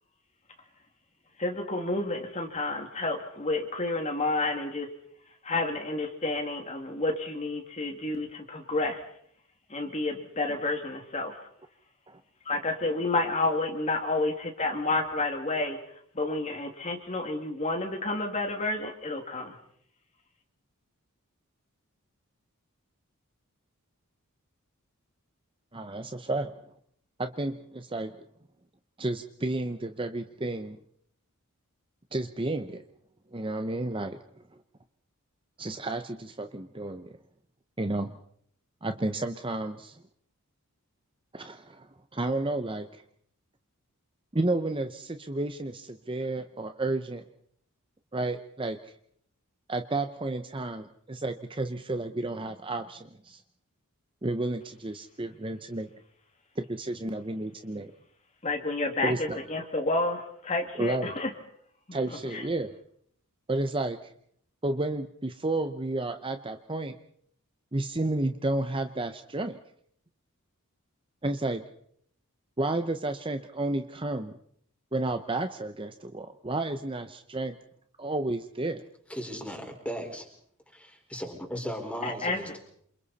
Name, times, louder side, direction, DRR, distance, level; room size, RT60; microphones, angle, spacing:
voice 1, 1.4-4.9 5.4-9.0 9.7-11.4 12.5-15.8 16.1-19.5 58.4-61.3 61.9-62.0 62.3-62.5 82.0-82.4, left 2 dB, 30° left, 4 dB, 2.5 m, -30 dB
voice 2, 25.7-26.6 27.2-28.2 29.0-30.8 32.1-32.8 33.3-34.2 35.6-37.2 37.8-38.2 38.8-40.0 41.3-43.0 44.3-47.2 48.1-48.8 49.7-53.4 54.2-55.9 56.6-57.9 59.0-59.4 60.7-61.2 61.9-62.7 63.5-64.1 64.6-67.0 67.7-69.6 71.2-71.6 72.6-74.4 74.9-77.6 78.0-78.8, right 2 dB, 25° right, 8 dB, 0.9 m, -31 dB
voice 3, 79.1-80.3 80.7-82.6, equal, 5° left, 2 dB, 5.0 m, -37 dB
28.5 x 27.5 x 4.2 m, 0.66 s
head